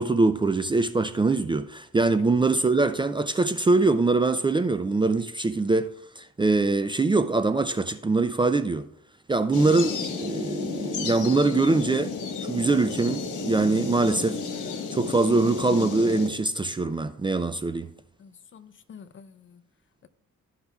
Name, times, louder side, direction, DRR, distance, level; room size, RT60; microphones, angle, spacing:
voice 1, 0.0-8.9 9.3-12.1 12.4-14.4 14.9-17.9, right 3 dB, 15° right, 0.4 m, -23 dB
sound 1, 9.5-16.3, left 5 dB, 80° left, 1.4 m, -32 dB
voice 2, 18.2-19.6, left 6 dB, 40° left, 0.6 m, -49 dB
14.0 x 5.6 x 2.3 m
cardioid pair, 90°, 30 cm